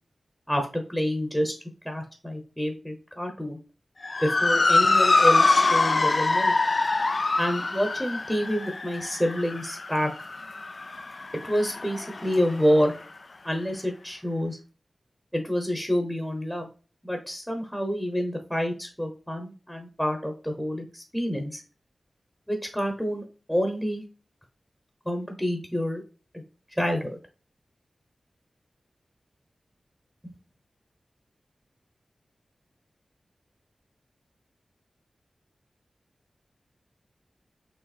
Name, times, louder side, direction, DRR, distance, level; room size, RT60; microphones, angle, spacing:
voice 1, 0.5-1.5 1.8-3.6 4.2-6.5 7.4-10.1 11.4-13.0 13.4-14.6 15.3-16.7 17.0-21.6 22.5-24.0 25.0-26.0 26.3-26.4 26.8-27.2, equal, ahead, 3 dB, 0.9 m, -28 dB
Motor vehicle (road) / Siren, 4.0-12.6, left 3 dB, 40° left, 0.4 m, -24 dB
6.0 x 3.4 x 2.4 m, 0.35 s
wide cardioid pair, 115°, 0 cm